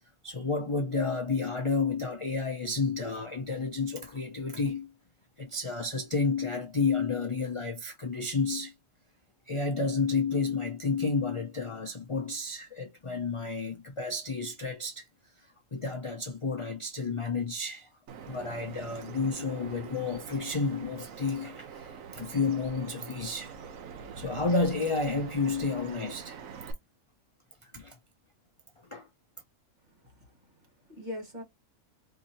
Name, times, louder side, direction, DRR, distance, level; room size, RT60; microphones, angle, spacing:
voice 1, 0.2-4.9 5.4-8.7 9.5-15.1 15.4-17.9 18.3-23.5 24.2-26.4 27.6-28.0 28.9-29.1, left 4 dB, 40° left, 0.4 m, -31 dB
Bird vocalization bird call bird song, 18.1-26.7, right 6 dB, 70° right, 1.2 m, -44 dB
voice 2, 29.8-31.4, left 1 dB, 35° right, 1.2 m, -43 dB
4.8 x 2.7 x 2.7 m
omnidirectional pair, 1.5 m